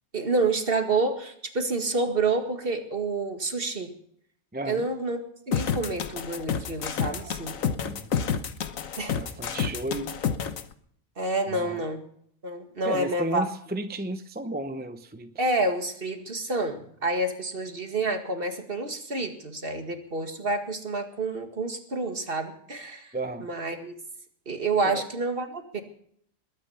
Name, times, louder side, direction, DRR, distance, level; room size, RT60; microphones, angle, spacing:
voice 1, 0.1-3.9 4.7-5.2 5.5-7.5 9.0-9.2 11.2-12.0 12.4-13.5 15.4-24.0 24.5-25.8, right 2 dB, 40° right, 5 dB, 2.1 m, -28 dB
voice 2, 4.5-4.9 7.0-7.3 7.8-8.1 9.1-10.1 11.5-11.8 12.8-15.3 23.1-23.5 24.8-25.0, right 2 dB, 10° right, 8 dB, 0.7 m, -33 dB
sound 1, 5.5-10.6, left 7 dB, 70° left, 1.4 m, -29 dB
21.5 x 9.9 x 5.7 m, 0.65 s
omnidirectional pair, 1.5 m